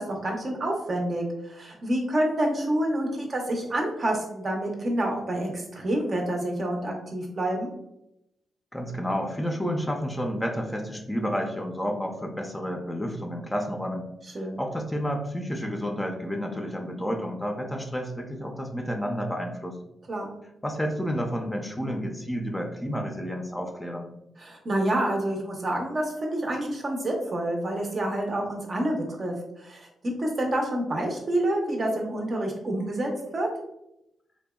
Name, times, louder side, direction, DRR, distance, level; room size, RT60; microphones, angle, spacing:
voice 1, 0.0-7.7 14.3-14.6 20.1-20.3 24.4-29.9 30.2-33.5, right 1 dB, 50° right, 0 dB, 0.6 m, -28 dB
voice 2, 8.7-14.1 14.4-19.8 20.6-24.1, equal, 15° left, 1 dB, 0.5 m, -30 dB
2.7 x 2.1 x 2.2 m, 0.83 s
hypercardioid pair, 40°, 0 cm